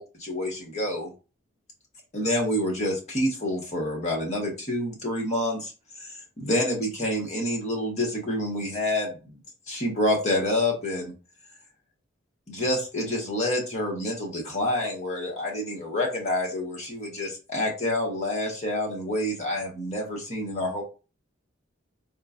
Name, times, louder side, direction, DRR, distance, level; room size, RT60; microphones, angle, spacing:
voice 1, 0.2-1.1 2.1-5.7 6.0-9.3 9.7-11.1 12.5-20.8, left 1 dB, 35° left, -1 dB, 1.2 m, -28 dB
4.2 x 2.1 x 2.5 m, 0.32 s
head